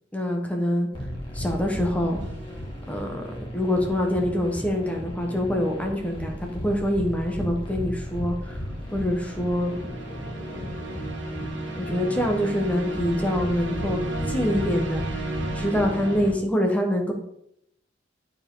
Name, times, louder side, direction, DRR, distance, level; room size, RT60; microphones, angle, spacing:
voice 1, 0.1-0.9 1.3-2.2 2.9-3.2 3.5-8.6 8.9-9.8 10.6-10.7 10.9-11.0 11.8-15.3 15.5-17.1, equal, 10° left, 1 dB, 1.2 m, -25 dB
sound 1, 0.9-16.3, equal, 30° left, 2.0 m, -35 dB
sound 2, 2.2-2.6 8.5-16.3, right 1 dB, 75° right, 1.7 m, -34 dB
12.0 x 4.7 x 3.9 m, 0.75 s
head